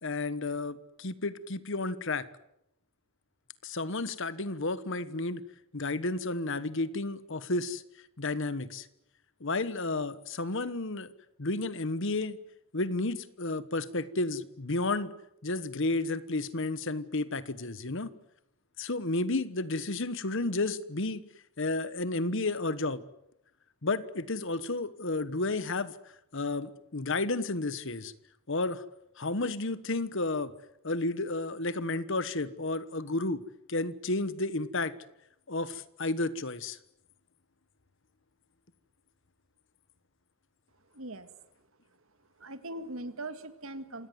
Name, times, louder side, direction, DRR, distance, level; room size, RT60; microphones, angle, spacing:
voice 1, 0.0-2.3 3.6-5.4 5.7-7.8 8.2-8.9 9.4-11.1 11.4-12.4 12.7-15.1 15.4-18.1 18.8-21.2 21.6-23.0 23.8-25.9 26.3-28.1 28.5-28.8 29.2-30.5 30.8-33.4 33.7-34.9 35.5-36.8, left 2 dB, 55° left, 15 dB, 1.3 m, -32 dB
voice 2, 40.9-41.3 42.4-44.1, right 2 dB, 65° right, 11 dB, 2.0 m, -40 dB
27.5 x 17.5 x 9.4 m, 0.80 s
head